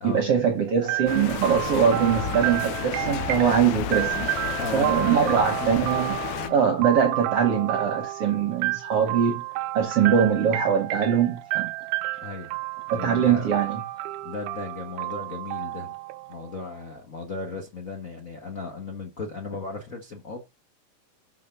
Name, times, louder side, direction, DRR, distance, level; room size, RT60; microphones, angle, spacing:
voice 1, 0.0-4.3 4.7-6.2 6.5-9.4 9.7-11.7 12.9-13.8, right 7 dB, 65° right, 1.5 m, -22 dB
sound 1, 0.9-16.7, right 18 dB, 85° right, 1.7 m, -31 dB
sound 2, 1.1-6.5, left 12 dB, 75° left, 2.1 m, -32 dB
voice 2, 4.2-5.9 6.4-6.6 7.2-7.3 12.2-12.6 12.9-13.5 14.2-15.9 16.3-20.4, left 4 dB, 60° left, 0.8 m, -36 dB
6.5 x 5.7 x 5.7 m
omnidirectional pair, 4.0 m